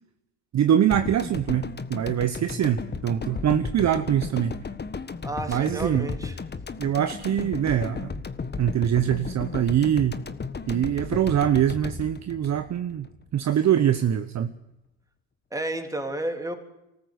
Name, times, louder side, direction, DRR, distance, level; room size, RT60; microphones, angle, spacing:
voice 1, 0.5-4.6 5.5-6.1 6.8-8.1 8.6-10.2 10.7-13.1 13.3-14.5, right 10 dB, 40° right, 10 dB, 1.1 m, -23 dB
sound 1, 0.9-13.2 13.5-13.6, left 4 dB, 25° left, 1.5 m, -35 dB
voice 2, 5.2-6.3 15.5-16.6, right 1 dB, 5° right, 4 dB, 3.6 m, -31 dB
24.5 x 14.0 x 8.2 m, 0.94 s
hypercardioid pair, 80°, 43 cm